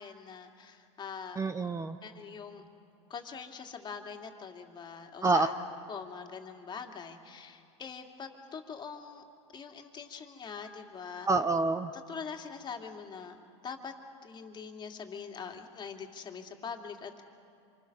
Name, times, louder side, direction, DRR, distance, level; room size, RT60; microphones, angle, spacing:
voice 1, 0.0-1.4 2.0-2.6 3.1-5.5 5.9-9.2 9.5-11.3 12.1-13.4 13.6-13.9 14.2-17.2, left 6 dB, 30° left, 3 dB, 2.5 m, -43 dB
voice 2, 1.4-2.0 5.2-5.5 11.3-11.9, right 3 dB, 20° right, 10 dB, 0.8 m, -27 dB
26.5 x 25.5 x 6.8 m, 2.7 s
supercardioid pair, 105°, 16 cm